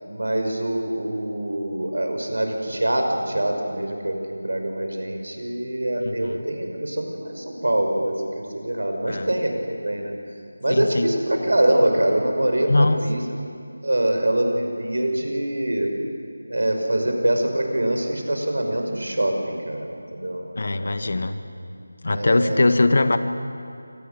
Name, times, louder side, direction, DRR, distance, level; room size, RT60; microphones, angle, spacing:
voice 1, 0.1-10.1 10.6-13.2 13.8-15.9 16.5-21.1 22.1-22.6, right 1 dB, 85° right, 3 dB, 5.8 m, -24 dB
voice 2, 6.0-6.4 9.1-9.3 10.7-11.1 12.7-13.0 20.6-21.4 22.0-23.2, left 2 dB, 45° left, 9 dB, 1.5 m, -21 dB
29.5 x 25.5 x 7.0 m, 2.6 s
figure-of-eight pair, 175°, 0 cm